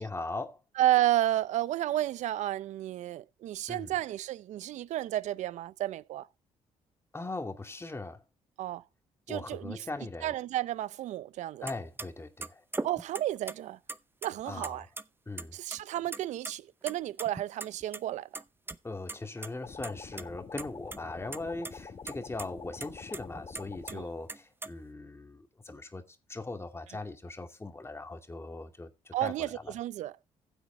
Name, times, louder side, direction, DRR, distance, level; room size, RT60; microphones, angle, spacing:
voice 1, 0.0-0.6 3.7-3.9 7.1-8.2 9.3-10.3 11.6-12.6 14.5-14.9 15.3-15.6 18.8-29.7, left 2 dB, 20° left, 2.4 m, -40 dB
voice 2, 0.8-6.3 8.6-8.8 9.3-9.8 10.2-11.7 12.8-13.8 14.2-14.9 15.5-18.3 23.9-24.1 29.1-30.2, right 14 dB, 70° right, 0.6 m, -31 dB
sound 1, 11.7-11.8 12.0-12.1 12.4-13.5 13.9-14.7 15.0-15.1 15.4-15.8 16.1-16.5 16.9-18.0 18.3-18.8 19.1-19.2 19.4-19.5 19.8-20.2 20.6-21.0 21.3-21.7 22.1-22.2 22.4-22.5 22.8-23.9 24.3-24.7, right 3 dB, 15° right, 0.7 m, -39 dB
sound 2, 19.6-24.1, left 5 dB, 40° left, 2.2 m, -46 dB
15.0 x 8.2 x 3.4 m
supercardioid pair, 65°, 13 cm